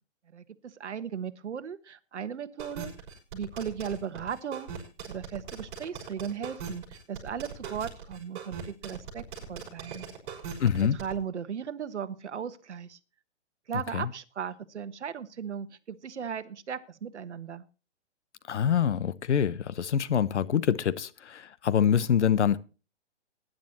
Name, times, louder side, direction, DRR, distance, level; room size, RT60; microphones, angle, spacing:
voice 1, 0.3-2.9 3.3-4.7 5.1-10.1 10.9-13.0 13.7-17.6, right 7 dB, 80° right, 1.4 m, -37 dB
sound 1, 2.6-11.1, right 7 dB, 45° right, 5.9 m, -40 dB
voice 2, 10.6-11.0 13.9-14.1 18.5-22.6, left 8 dB, 80° left, 1.0 m, -25 dB
19.5 x 10.5 x 2.9 m
hypercardioid pair, 155°, 35 cm